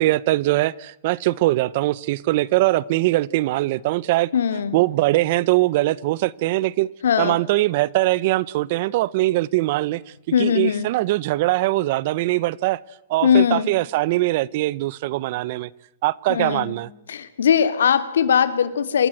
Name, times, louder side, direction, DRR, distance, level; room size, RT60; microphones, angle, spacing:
voice 1, 0.0-4.3 4.7-6.9 7.2-10.0 10.4-12.8 13.1-15.7 16.0-16.9, right 18 dB, 55° right, 1.0 m, -21 dB
voice 2, 4.3-4.8 7.0-7.4 10.3-10.9 13.2-13.7 16.3-16.7 17.1-19.1, left 8 dB, 85° left, 2.6 m, -20 dB
27.5 x 24.0 x 8.0 m
hypercardioid pair, 125°, 0 cm